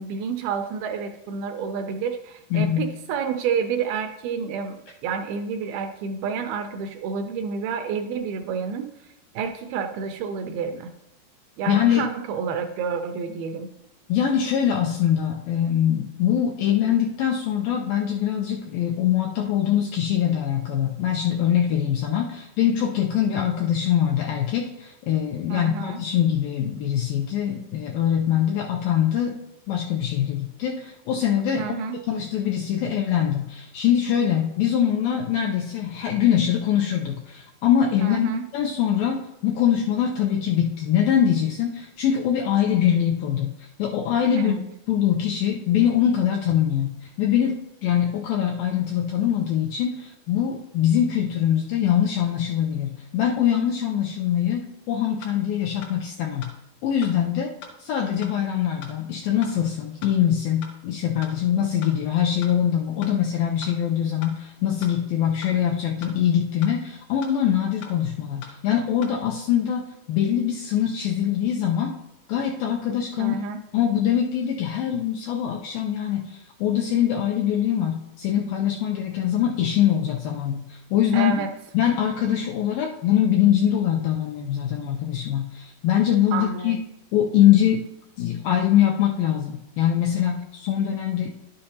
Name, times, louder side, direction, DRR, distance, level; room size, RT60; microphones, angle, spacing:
voice 1, 0.0-9.1 9.4-10.9 11.6-13.7 25.5-26.0 31.6-32.0 38.0-38.5 44.4-44.6 73.2-73.6 81.1-81.5 86.3-86.8, right 6 dB, 80° right, 6 dB, 2.2 m, -29 dB
voice 2, 2.5-2.9 11.7-12.0 14.1-29.4 29.7-31.7 32.1-44.6 44.9-56.5 56.8-57.5 57.8-69.8 70.1-72.0 72.3-73.4 73.7-81.5 81.7-86.8 87.1-87.8 88.2-91.3, left 10 dB, 85° left, 1 dB, 2.0 m, -23 dB
sound 1, 55.2-55.3 55.8-55.9 56.4-56.5 57.0-57.1 57.6-57.7 58.2-58.3 58.8-58.9 59.4-59.5 60.0-60.1 60.6-60.7 61.2-61.3 61.8-61.9 62.4-62.5 63.0-63.1 63.6-63.7 64.2-64.3 64.8-64.9 65.4-65.5 66.0-66.1 66.6-66.7 67.2-67.3 67.8-67.9 68.4-68.5 69.0-69.1, left 5 dB, 70° left, 1.7 m, -40 dB
11.0 x 6.5 x 2.8 m, 0.85 s
omnidirectional pair, 4.6 m